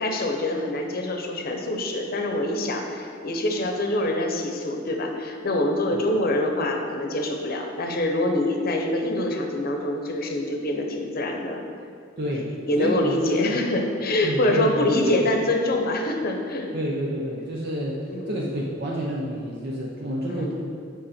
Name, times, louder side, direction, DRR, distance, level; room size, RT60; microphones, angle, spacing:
voice 1, 0.0-11.6 12.7-16.7 18.1-18.4 20.3-20.5, left 1 dB, 55° left, 3 dB, 0.8 m, -25 dB
voice 2, 12.2-12.5 12.8-13.6 14.2-15.3 16.7-20.5, equal, 60° right, -3 dB, 0.8 m, -29 dB
7.9 x 5.2 x 4.3 m, 2.4 s
head